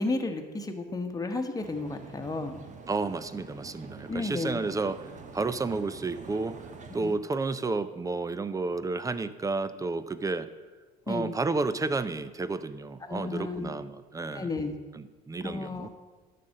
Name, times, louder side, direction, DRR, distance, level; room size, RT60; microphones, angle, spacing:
voice 1, 0.0-2.6 4.1-4.6 7.0-7.2 11.1-11.3 13.0-13.7 14.3-14.7 15.4-15.9, left 3 dB, 20° left, 5 dB, 1.2 m, -32 dB
sound 1, 1.6-7.1, right 4 dB, 40° right, 1.1 m, -46 dB
voice 2, 2.9-6.6 6.9-10.5 11.1-14.5 14.9-15.9, right 3 dB, 15° right, 14 dB, 0.5 m, -31 dB
11.5 x 4.2 x 7.5 m, 1.3 s
supercardioid pair, 95°, 20 cm